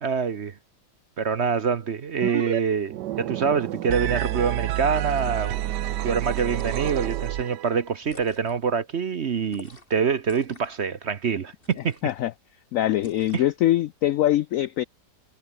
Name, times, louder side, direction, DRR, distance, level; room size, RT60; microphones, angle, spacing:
voice 1, 0.0-0.5 1.2-5.6 6.0-12.0 13.3-13.4, right 6 dB, 50° right, 1.0 m, -25 dB
sound 1, 2.2-2.6 2.9-7.8, right 13 dB, 80° right, 1.3 m, -29 dB
sound 2, 5.0-5.7 6.5-7.2 8.0-8.6 9.5-10.0 10.2-10.8 11.6-12.2 13.0-13.5, left 2 dB, 30° left, 4.1 m, -48 dB
voice 2, 12.7-14.8, left 13 dB, 75° left, 0.7 m, -23 dB
omnidirectional pair, 1.9 m